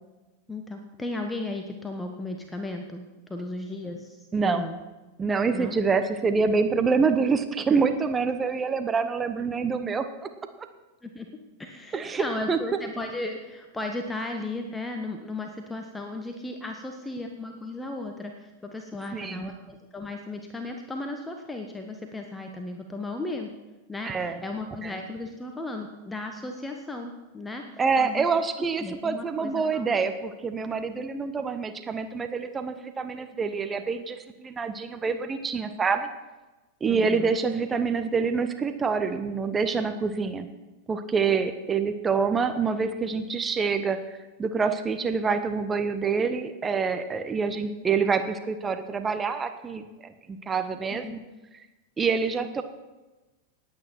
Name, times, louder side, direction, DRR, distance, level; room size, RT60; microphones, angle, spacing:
voice 1, 0.5-4.8 5.5-5.7 11.0-11.3 11.6-23.5 23.9-28.3 28.8-30.0 36.9-37.4 50.9-51.2, left 2 dB, 10° left, 4 dB, 1.1 m, -35 dB
voice 2, 4.3-4.6 5.2-10.0 10.6-10.7 11.9-12.6 19.1-19.6 24.0-24.4 24.8-24.9 27.8-36.1 36.8-40.5 40.9-44.0 44.4-51.2 52.0-52.6, right 5 dB, 20° right, 9 dB, 0.9 m, -26 dB
19.0 x 8.8 x 4.5 m, 1.1 s
figure-of-eight pair, 90°, 0 cm